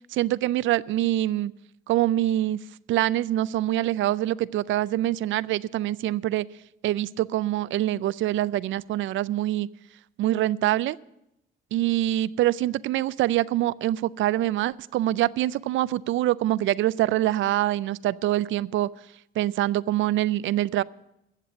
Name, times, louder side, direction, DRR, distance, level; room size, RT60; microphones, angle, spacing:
voice 1, 0.1-1.5 1.9-2.6 2.9-6.5 6.8-9.7 10.2-11.0 11.7-18.9 19.4-20.8, right 14 dB, 75° right, 19 dB, 0.4 m, -25 dB
14.5 x 7.5 x 7.5 m, 0.85 s
cardioid pair, 90°, 20 cm